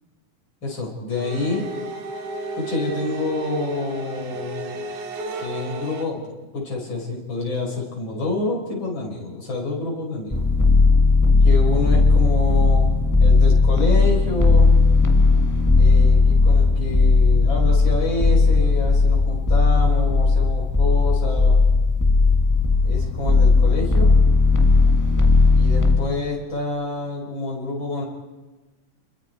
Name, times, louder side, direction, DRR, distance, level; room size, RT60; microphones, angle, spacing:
voice 1, 0.6-1.7 2.6-4.8 5.4-10.4 11.4-12.9 13.2-14.7 15.8-21.6 22.8-24.1 25.5-28.0, left 2 dB, 35° left, -2 dB, 5.9 m, -27 dB
sound 1, 1.1-6.0, right 3 dB, 70° right, 3.4 m, -33 dB
sound 2, 10.3-26.0, left 3 dB, 20° left, 0.4 m, -16 dB
30.0 x 22.0 x 4.6 m, 1.2 s
omnidirectional pair, 3.6 m